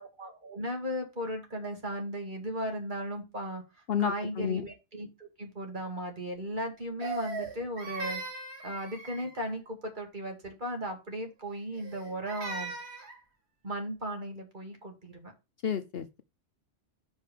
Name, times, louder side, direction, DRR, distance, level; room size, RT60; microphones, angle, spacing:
voice 1, 0.0-3.6 4.0-5.1 5.4-8.2 8.6-12.7 13.6-15.3, equal, 40° right, 2.4 m, -36 dB
voice 2, 3.9-4.6 15.6-16.2, left 9 dB, 60° left, 0.9 m, -31 dB
Crying sobbing, 7.0-9.5 11.7-13.2, right 3 dB, 60° right, 2.0 m, -39 dB
5.4 x 5.3 x 6.6 m
omnidirectional pair, 1.3 m